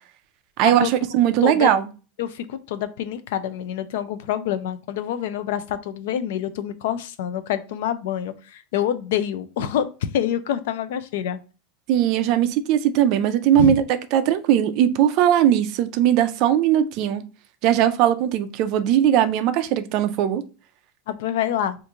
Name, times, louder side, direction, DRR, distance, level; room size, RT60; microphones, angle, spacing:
voice 1, 0.6-1.9 11.9-13.8 14.1-17.2 17.6-20.4, right 11 dB, 40° right, 11 dB, 0.3 m, -19 dB
voice 2, 1.4-1.7 2.2-11.4 13.6-13.8 21.1-21.8, left 10 dB, 65° left, 12 dB, 0.4 m, -26 dB
3.0 x 2.5 x 3.5 m, 0.33 s
supercardioid pair, 180°, 0 cm